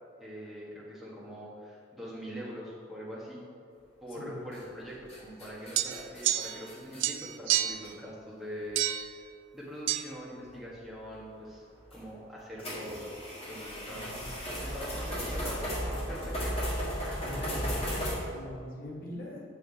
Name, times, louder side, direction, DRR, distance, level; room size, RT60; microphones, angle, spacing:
voice 1, 0.2-3.4 4.0-9.3 9.5-11.6 11.9-13.1 13.4-16.7 17.0-17.5, equal, ahead, -8 dB, 1.5 m, -43 dB
sound 1, 4.5-4.8 5.1-7.0 7.9-8.0 8.6-8.7 10.0-10.1 11.9-12.0 12.6-18.1, equal, 30° left, 1.6 m, -35 dB
sound 2, 5.8-6.7 7.0-7.9 8.8-9.1 9.9-10.0, right 13 dB, 75° right, 0.3 m, -29 dB
voice 2, 13.9-14.4 17.2-19.4, left 1 dB, 50° left, -4 dB, 1.5 m, -43 dB
7.3 x 5.8 x 4.2 m, 2.3 s
head